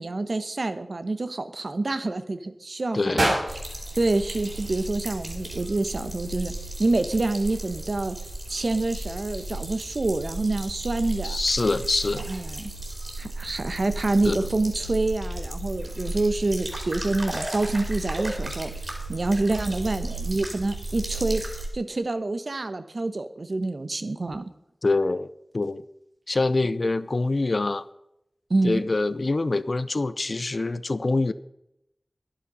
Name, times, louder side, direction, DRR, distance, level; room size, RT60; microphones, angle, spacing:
voice 1, 0.0-3.3 4.0-6.5 6.8-8.2 8.5-11.4 12.3-12.7 13.2-24.4 28.5-28.8, right 2 dB, 65° right, 10 dB, 1.1 m, -27 dB
voice 2, 2.9-3.3 11.2-12.3 14.3-14.5 24.8-25.3 25.5-25.8 26.3-27.8 28.6-31.3, left 3 dB, 65° left, 15 dB, 0.6 m, -25 dB
sound 1, 3.2-5.3, right 1 dB, 90° right, 5.3 m, -29 dB
sound 2, 3.5-21.7, right 1 dB, 45° right, 4.8 m, -34 dB
11.5 x 11.0 x 5.4 m, 0.82 s
wide cardioid pair, 50°, 0 cm